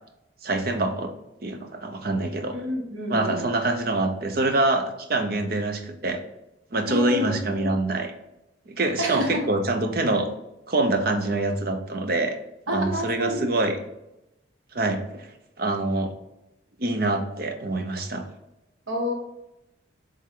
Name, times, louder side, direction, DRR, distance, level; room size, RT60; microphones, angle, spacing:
voice 1, 0.4-1.1 1.4-2.5 3.1-6.2 6.7-8.1 8.7-10.3 10.7-12.4 12.7-13.8 14.7-15.3 15.6-16.1 16.8-18.2, right 2 dB, 50° right, 6 dB, 0.7 m, -25 dB
voice 2, 2.5-3.5 6.9-7.8 9.0-9.5 12.7-13.5 18.9-19.1, left 1 dB, 90° right, 2 dB, 1.4 m, -29 dB
7.6 x 3.5 x 3.7 m, 0.88 s
head